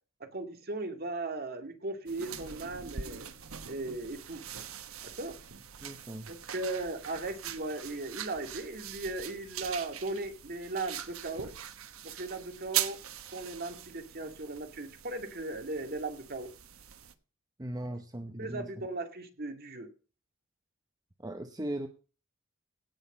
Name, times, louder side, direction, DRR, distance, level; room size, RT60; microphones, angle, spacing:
voice 1, 0.2-3.3 3.7-4.4 5.0-5.4 6.3-11.5 12.0-13.0 13.3-16.5 17.9-18.0 18.4-19.9, right 2 dB, 45° right, 6 dB, 2.1 m, -37 dB
sound 1, 2.1-17.1, right 10 dB, 85° right, 1.2 m, -41 dB
voice 2, 5.8-6.3 17.6-18.9 21.2-21.9, right 1 dB, 20° right, 7 dB, 0.8 m, -38 dB
17.0 x 6.5 x 5.5 m, 0.36 s
head